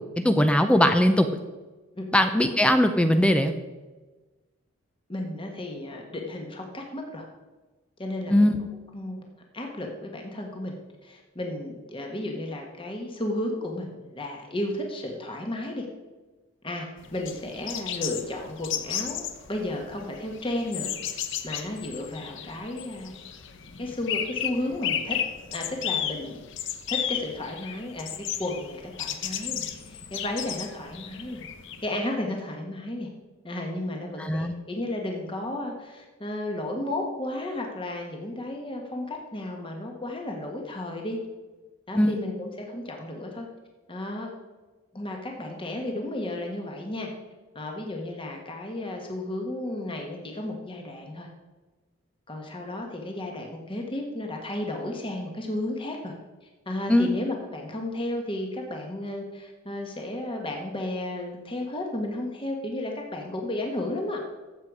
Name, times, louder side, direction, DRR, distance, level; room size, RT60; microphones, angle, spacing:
voice 1, 0.2-1.3 2.1-3.5 8.3-8.6 34.2-34.5 42.0-42.2 56.9-57.1, left 1 dB, 5° left, 8 dB, 0.5 m, -20 dB
voice 2, 5.1-7.2 8.0-8.5 8.9-9.3 9.5-15.9 16.6-20.9 21.4-23.1 23.8-25.2 25.5-26.4 26.9-31.4 31.8-33.1 33.4-41.2 41.9-43.5 43.9-44.3 44.9-47.1 47.5-51.3 52.3-56.1 56.7-64.2, left 1 dB, 25° left, 2 dB, 1.4 m, -33 dB
sound 1, 17.0-31.9, left 9 dB, 60° left, 0.8 m, -34 dB
13.0 x 7.9 x 4.8 m, 1.2 s
head